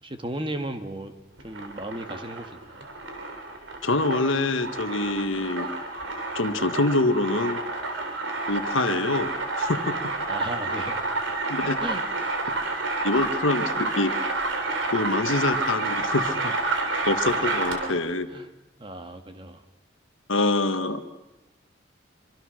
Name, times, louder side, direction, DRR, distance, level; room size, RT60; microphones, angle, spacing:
voice 1, 0.0-1.1 1.4-2.9 10.3-11.0 11.6-12.4 18.3-18.5 18.8-19.6, right 1 dB, 25° right, 7 dB, 1.6 m, -35 dB
sound 1, 1.4-18.0, right 3 dB, 70° right, 3.4 m, -29 dB
voice 2, 3.8-5.7 6.3-7.6 8.5-10.0 11.5-11.8 13.0-14.4 14.9-16.5 17.0-18.3 20.3-21.1, left 2 dB, 75° left, 9 dB, 1.5 m, -25 dB
25.0 x 24.5 x 6.4 m, 1.1 s
head